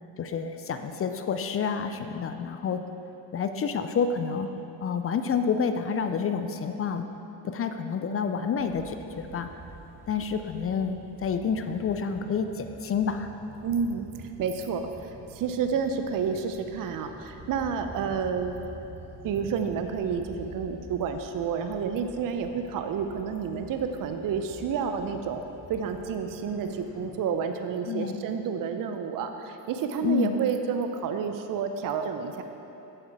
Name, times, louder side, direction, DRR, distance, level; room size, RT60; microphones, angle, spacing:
voice 1, 0.2-2.8 3.3-4.5 4.8-7.1 7.4-9.5 10.1-13.3 27.9-28.2 30.0-30.4, left 6 dB, 30° left, 8 dB, 0.5 m, -29 dB
sound 1, 8.6-27.1, equal, 5° right, 1.9 m, -48 dB
voice 2, 13.6-18.6 19.2-25.4 25.7-32.4, right 6 dB, 45° right, 7 dB, 0.7 m, -30 dB
8.0 x 7.3 x 4.7 m, 3.0 s
supercardioid pair, 75°, 46 cm